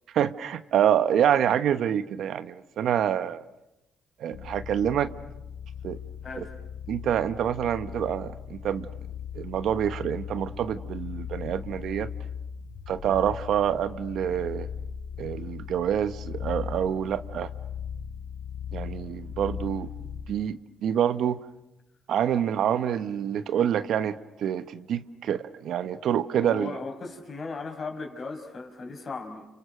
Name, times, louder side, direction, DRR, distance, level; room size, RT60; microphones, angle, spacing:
voice 1, 0.1-3.4 4.2-5.1 5.8-6.0 6.9-8.9 9.3-12.1 12.9-14.7 15.2-17.5 18.7-19.9 20.3-21.4 22.1-26.8, right 9 dB, 70° right, 12 dB, 1.1 m, -27 dB
sound 1, 4.3-20.5, left 8 dB, 85° left, 1.4 m, -38 dB
voice 2, 6.2-6.5 26.4-29.5, left 3 dB, 45° left, 5 dB, 5.3 m, -37 dB
30.0 x 30.0 x 6.6 m, 0.91 s
cardioid pair, 90°, 0 cm